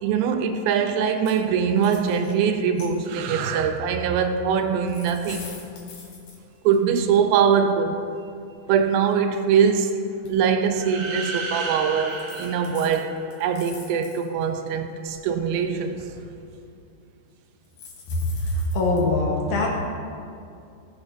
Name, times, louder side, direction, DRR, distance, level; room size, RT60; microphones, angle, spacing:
voice 1, 0.0-5.5 6.6-8.0 8.7-10.0 10.3-16.0, right 7 dB, 90° right, 7 dB, 2.5 m, -22 dB
sound 1, 1.2-1.4 1.7-2.3 2.8-3.3 4.6-6.8 7.9-8.0 8.5-9.7 10.2-10.3 10.9-11.0 11.8-11.9 12.1-14.4 14.9-16.3 17.6-19.0, left 4 dB, 85° left, 3.6 m, -45 dB
sound 2, 10.7-13.7, right 4 dB, 60° right, 1.6 m, -33 dB
voice 2, 18.1-19.7, left 2 dB, 65° left, -2 dB, 2.4 m, -23 dB
18.5 x 8.6 x 2.6 m, 2.5 s
omnidirectional pair, 4.1 m